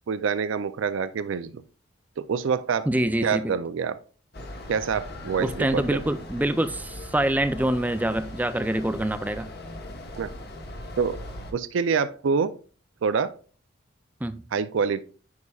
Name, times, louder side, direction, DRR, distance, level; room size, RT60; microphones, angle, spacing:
voice 1, 0.1-1.6 2.2-2.9 3.2-4.0 4.7-6.0 10.2-10.3 11.0-11.2 11.5-12.6 13.0-13.4 14.5-15.0, right 5 dB, 75° right, 13 dB, 0.4 m, -26 dB
voice 2, 2.9-3.5 5.4-9.5 14.2-14.4, right 1 dB, 10° right, 12 dB, 0.3 m, -25 dB
sound 1, 4.3-11.5, left 1 dB, 50° left, 1.2 m, -39 dB
9.5 x 5.4 x 2.3 m, 0.38 s
head